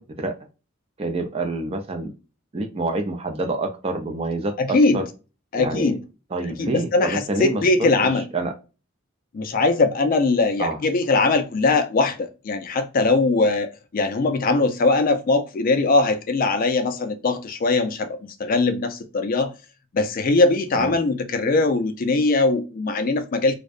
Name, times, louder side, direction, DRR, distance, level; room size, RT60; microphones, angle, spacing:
voice 1, 1.0-2.1 2.5-5.0 5.5-5.9 6.3-7.6 8.3-8.5 10.6-10.8 20.7-20.9, right 2 dB, 25° right, 0.4 m, -27 dB
voice 2, 4.6-5.0 5.5-6.0 6.5-8.3 9.3-19.5 19.9-23.5, left 3 dB, 40° left, 0.3 m, -21 dB
2.6 x 2.1 x 2.3 m
head